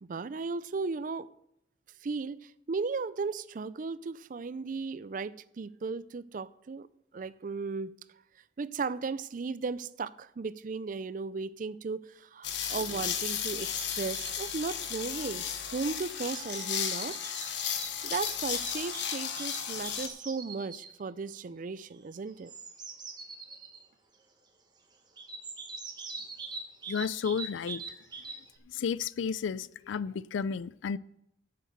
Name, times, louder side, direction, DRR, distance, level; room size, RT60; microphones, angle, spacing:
voice 1, 0.0-1.3 2.0-6.9 7.1-8.0 8.6-15.5 15.7-17.2 18.0-22.5, right 4 dB, 45° right, 0.4 m, -36 dB
sound 1, 12.4-20.1, left 8 dB, 70° left, 1.1 m, -34 dB
sound 2, 13.9-14.6 15.6-20.9 22.3-23.8 25.2-28.6, right 4 dB, 25° right, 1.4 m, -43 dB
voice 2, 26.9-27.8 28.7-31.0, left 6 dB, 90° left, 0.4 m, -32 dB
7.8 x 7.6 x 7.9 m
head